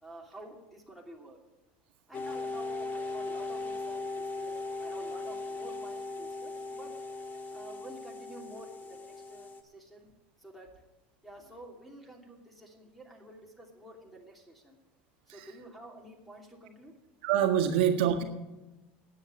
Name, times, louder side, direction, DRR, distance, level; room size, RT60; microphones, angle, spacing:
voice 1, 0.0-1.4 2.1-6.9 7.5-10.1 10.4-10.8 11.2-14.8 15.3-16.9, right 1 dB, ahead, 2 dB, 2.8 m, -50 dB
sound 1, 2.1-9.6, left 3 dB, 35° left, 1.5 m, -38 dB
voice 2, 17.2-18.2, right 9 dB, 80° right, 4 dB, 1.6 m, -25 dB
10.0 x 8.4 x 9.4 m, 1.1 s
supercardioid pair, 115°, 5 cm